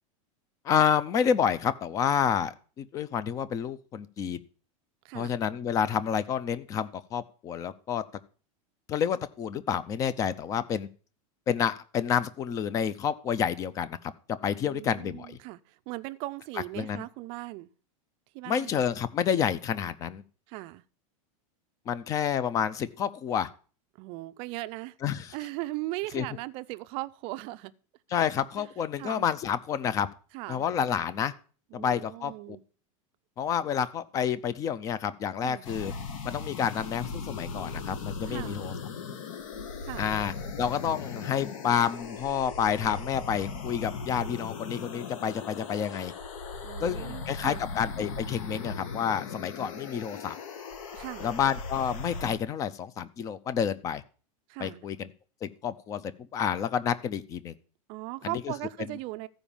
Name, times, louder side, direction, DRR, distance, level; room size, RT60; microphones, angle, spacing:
voice 1, 0.6-4.4 5.1-8.0 8.9-10.9 11.5-15.4 16.8-17.0 18.5-20.2 21.9-23.5 25.0-25.3 26.1-26.3 28.1-30.1 30.5-31.3 31.7-32.6 33.4-35.9 36.2-38.7 40.0-46.1 46.8-50.3 51.2-54.0 54.6-55.1 55.4-57.5 58.2-58.5, left 8 dB, 20° left, 0.5 m, -29 dB
voice 2, 5.0-5.4 14.6-17.7 18.3-18.8 20.5-20.8 24.0-24.9 25.3-27.7 28.6-28.7 29.0-29.3 30.3-30.7 31.7-32.6 35.4-35.6 38.3-38.7 39.8-40.1 46.6-47.7 50.9-51.3 54.5-54.9 57.9-59.3, right 19 dB, 35° right, 0.5 m, -38 dB
sound 1, 35.6-52.4, left 4 dB, 70° left, 2.0 m, -38 dB
14.0 x 5.0 x 7.1 m
supercardioid pair, 170°, 18 cm